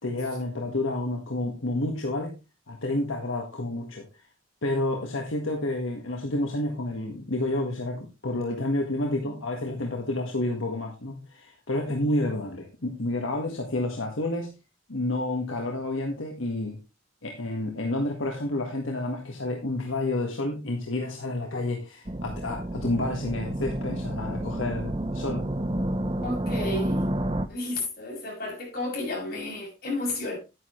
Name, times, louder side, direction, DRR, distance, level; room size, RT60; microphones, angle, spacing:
voice 1, 0.0-2.3 2.7-4.0 4.6-14.6 14.9-16.8 17.2-25.4, left 2 dB, 80° left, 1.7 m, -29 dB
sound 1, 22.1-27.5, right 1 dB, 25° right, 0.7 m, -30 dB
voice 2, 26.2-27.1 27.5-30.4, left 2 dB, 50° left, 6.5 m, -32 dB
10.0 x 9.6 x 3.1 m
head